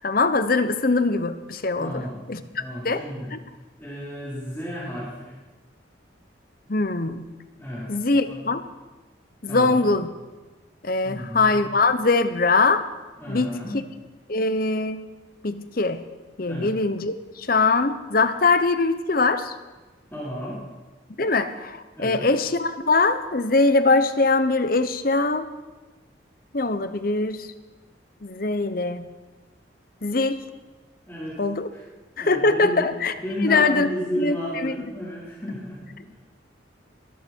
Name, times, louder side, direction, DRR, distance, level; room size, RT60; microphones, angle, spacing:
voice 1, 0.0-2.0 2.3-3.0 3.3-3.4 6.7-7.3 7.9-8.6 9.4-10.1 10.8-12.9 13.3-13.5 14.3-15.0 15.4-16.0 16.4-19.5 21.2-25.5 26.5-27.5 28.2-29.1 30.0-30.4 31.4-31.7 32.2-33.1 33.4-33.9 34.2-34.4 34.6-34.7, left 3 dB, 45° left, 11 dB, 0.9 m, -22 dB
voice 2, 1.8-2.1 2.6-3.3 3.8-5.3 7.6-8.0 8.2-8.4 9.5-9.9 11.0-11.6 13.2-13.8 16.4-16.7 20.1-20.6 21.9-22.3 31.1-31.4 31.7-31.8 32.2-32.8 33.1-36.1, equal, 10° left, -10 dB, 4.5 m, -33 dB
22.0 x 13.5 x 4.6 m, 1.2 s
head